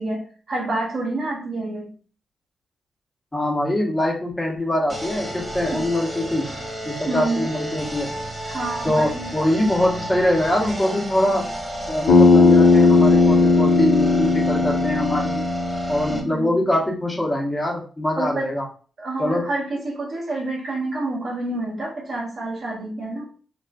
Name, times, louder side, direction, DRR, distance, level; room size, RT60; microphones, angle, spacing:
voice 1, 0.0-1.9 5.7-5.8 7.1-7.4 8.4-9.3 16.1-16.6 18.2-18.5 19.0-23.3, right 2 dB, 60° right, -1 dB, 0.8 m, -28 dB
voice 2, 3.3-6.4 6.8-8.1 8.8-11.4 11.9-15.4 15.9-18.6 19.2-19.4, left 1 dB, 20° left, -1 dB, 1.0 m, -23 dB
sound 1, 4.9-16.2, equal, 20° right, 0.8 m, -31 dB
Bass guitar, 12.1-16.4, left 3 dB, 75° left, 0.7 m, -16 dB
2.4 x 2.3 x 2.3 m, 0.40 s
hypercardioid pair, 40°, 0 cm